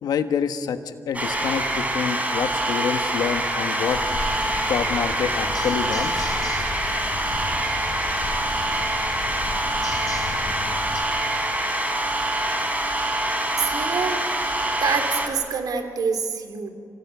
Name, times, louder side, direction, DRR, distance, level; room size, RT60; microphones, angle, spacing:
voice 1, 0.0-4.0 4.7-6.3, left 7 dB, 90° left, 8 dB, 1.4 m, -27 dB
sound 1, 1.1-15.3, right 1 dB, 20° right, 4.5 m, -25 dB
sound 2, 3.8-11.0, left 4 dB, 70° left, 3.9 m, -34 dB
voice 2, 13.6-14.2 14.8-16.7, right 5 dB, 75° right, 6 dB, 2.9 m, -26 dB
26.5 x 17.5 x 9.5 m, 2.2 s
cardioid pair, 70°, 7 cm